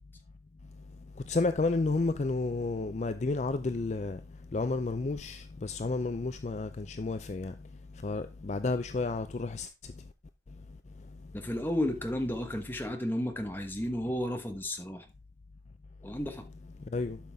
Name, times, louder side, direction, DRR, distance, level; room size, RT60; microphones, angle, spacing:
voice 1, 1.3-4.2 4.5-7.5 8.0-9.7 16.9-17.2, left 3 dB, 40° left, 0.4 m, -31 dB
voice 2, 11.3-15.1 16.0-16.4, left 1 dB, 10° left, 1.1 m, -33 dB
11.5 x 5.5 x 3.5 m
head